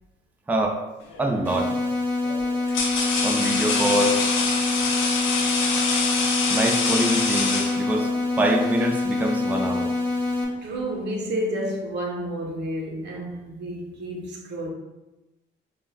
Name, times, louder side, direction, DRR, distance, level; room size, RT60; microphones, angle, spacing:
voice 1, 0.5-0.8 1.2-1.8 3.2-4.3 6.5-8.1 8.4-9.9, right 1 dB, 10° right, 0.3 m, -25 dB
sound 1, 1.1-1.4 2.2-8.2, left 4 dB, 85° left, 0.6 m, -25 dB
sound 2, 1.4-10.4, left 3 dB, 10° left, 0.8 m, -26 dB
voice 2, 10.6-14.7, right 1 dB, 60° right, 0.8 m, -30 dB
4.7 x 2.1 x 2.2 m
cardioid pair, 90°, 20 cm